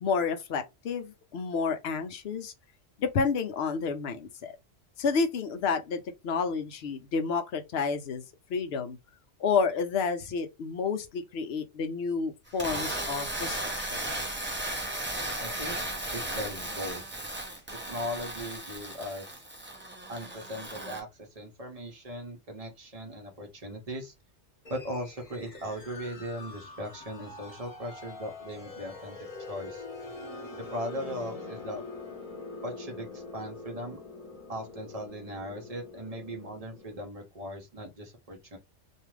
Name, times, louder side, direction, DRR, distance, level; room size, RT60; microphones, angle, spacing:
voice 1, 0.0-2.5 3.0-4.6 5.0-8.2 8.5-9.0 9.4-14.1, left 5 dB, 65° left, 0.8 m, -30 dB
sound 1, 12.5-21.0, right 1 dB, 15° right, 0.4 m, -35 dB
voice 2, 15.4-15.8 16.1-17.1 17.7-19.4 20.1-24.1 24.7-29.2 29.5-29.8 30.6-31.8 32.6-34.0 34.5-38.6, equal, 35° right, 0.8 m, -38 dB
sound 2, 24.6-36.9, left 3 dB, 30° left, 1.0 m, -44 dB
2.6 x 2.3 x 3.1 m
omnidirectional pair, 1.3 m